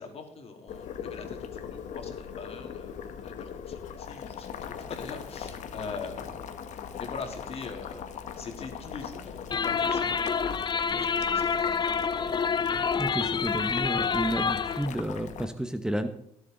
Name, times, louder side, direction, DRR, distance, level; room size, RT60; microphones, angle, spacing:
voice 1, 0.0-6.4 7.0-12.3, left 4 dB, 50° left, 4 dB, 3.2 m, -43 dB
Boiling, 0.7-15.5, left 7 dB, 70° left, 1.4 m, -40 dB
sound 1, 9.5-14.9, left 6 dB, 35° left, 0.6 m, -28 dB
voice 2, 13.0-16.1, right 1 dB, 5° right, 9 dB, 1.0 m, -31 dB
21.5 x 7.9 x 3.9 m, 0.72 s
cardioid pair, 80°, 13 cm